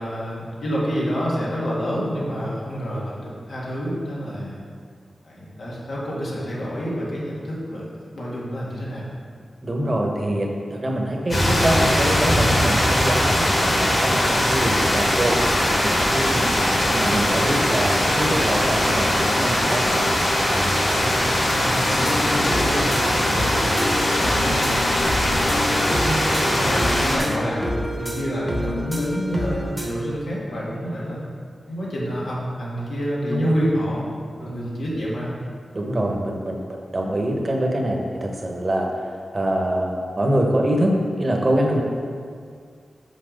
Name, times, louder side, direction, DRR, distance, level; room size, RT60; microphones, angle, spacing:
voice 1, 0.0-4.6 5.2-9.1 10.2-10.3 14.6-14.9 20.9-24.7 25.4-31.2 31.7-34.0 34.4-35.3, equal, 85° left, -6 dB, 1.9 m, -28 dB
voice 2, 9.6-16.5 16.9-20.1 33.3-33.5 34.4-34.5 35.7-36.6 36.9-38.9 39.3-41.8, right 1 dB, 30° right, 0 dB, 1.0 m, -24 dB
sound 1, 11.3-27.2, left 1 dB, 45° left, 1.9 m, -21 dB
sound 2, 22.0-29.9, equal, 5° right, 1.0 m, -28 dB
6.0 x 5.8 x 5.2 m, 2.1 s
wide cardioid pair, 125°, 0 cm